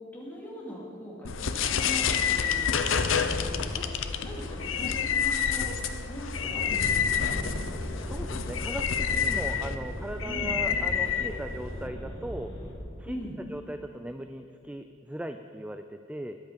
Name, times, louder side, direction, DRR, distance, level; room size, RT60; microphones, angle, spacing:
voice 1, 0.1-5.7 6.0-7.5 10.2-10.6 13.0-13.4, equal, 10° left, -5 dB, 2.8 m, -41 dB
sound 1, 1.2-11.9, left 7 dB, 80° left, 0.7 m, -28 dB
sound 2, 6.3-12.7, equal, 25° left, 2.8 m, -38 dB
voice 2, 7.9-12.5 13.0-13.2 13.5-16.4, right 1 dB, 5° right, 8 dB, 0.3 m, -38 dB
21.5 x 8.1 x 5.2 m, 2.5 s
head